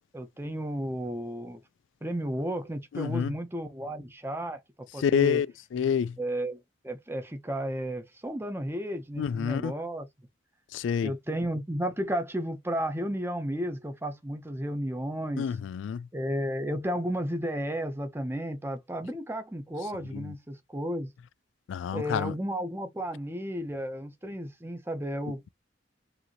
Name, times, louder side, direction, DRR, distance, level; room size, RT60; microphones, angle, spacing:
voice 1, 0.1-1.6 2.0-5.4 6.2-10.1 11.0-15.6 16.1-21.1 21.9-25.5, equal, 15° right, 0.8 m, -33 dB
voice 2, 2.9-3.3 5.0-5.5 5.7-6.1 9.2-9.7 10.7-11.1 15.4-16.0 20.1-20.2 21.7-22.3, left 7 dB, 90° left, 0.3 m, -27 dB
5.0 x 2.8 x 3.0 m
head